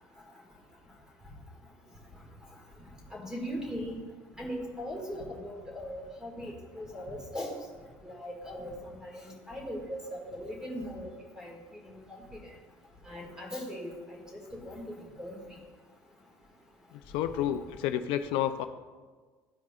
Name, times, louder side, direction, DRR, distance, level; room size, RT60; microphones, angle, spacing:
voice 1, 3.1-4.0 4.4-7.5 8.0-11.1 11.4-11.5 11.8-12.0 13.1-13.9 14.6-15.4, equal, 5° right, -1 dB, 1.8 m, -39 dB
voice 2, 17.1-18.6, left 11 dB, 75° left, 9 dB, 0.4 m, -30 dB
13.5 x 4.8 x 2.3 m, 1.4 s
cardioid pair, 130°, 9 cm